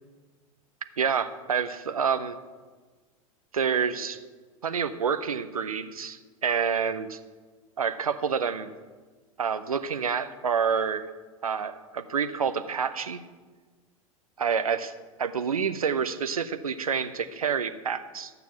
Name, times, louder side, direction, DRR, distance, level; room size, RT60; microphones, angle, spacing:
voice 1, 1.0-2.3 3.5-4.2 4.6-7.2 7.8-8.7 9.4-11.1 11.4-13.2 14.4-14.9 15.2-18.3, right 6 dB, 80° right, 11 dB, 0.6 m, -28 dB
12.0 x 7.0 x 5.7 m, 1.4 s
figure-of-eight pair, 90°, 18 cm